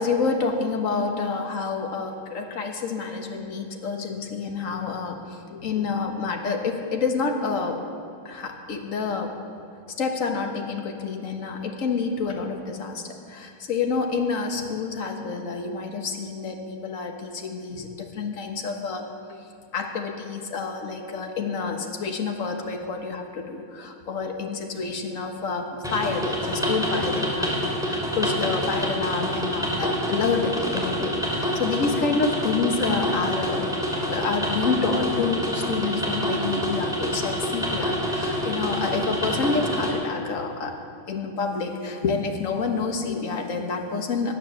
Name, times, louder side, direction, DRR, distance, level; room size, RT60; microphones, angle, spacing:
voice 1, 0.0-7.8 8.3-9.3 10.0-19.0 19.7-40.7 41.1-44.3, left 4 dB, 40° left, 3 dB, 1.6 m, -28 dB
sound 1, 25.8-39.9, equal, ahead, 2.6 m, -27 dB
17.0 x 9.5 x 7.5 m, 2.4 s
omnidirectional pair, 2.3 m